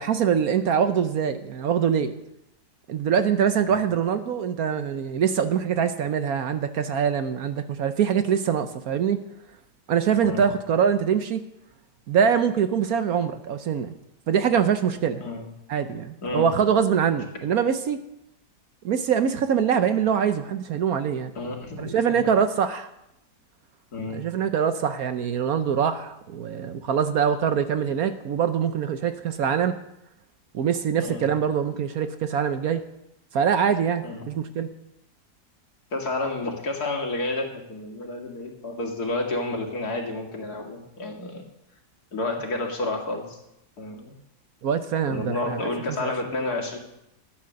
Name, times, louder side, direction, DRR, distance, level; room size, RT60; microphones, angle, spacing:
voice 1, 0.0-2.1 2.9-9.2 9.9-11.4 12.1-13.9 14.3-15.2 15.7-18.0 18.8-21.3 21.8-22.9 24.1-29.8 30.5-32.8 33.3-34.7 44.6-45.6 46.0-46.1, right 7 dB, 65° right, 10 dB, 1.1 m, -24 dB
voice 2, 21.3-21.9 23.9-24.3 31.0-31.3 34.0-34.3 35.9-41.4 42.1-43.4 43.8-44.1 45.1-46.8, left 2 dB, 60° left, 1 dB, 2.6 m, -30 dB
13.5 x 9.5 x 6.4 m, 0.84 s
omnidirectional pair, 1.8 m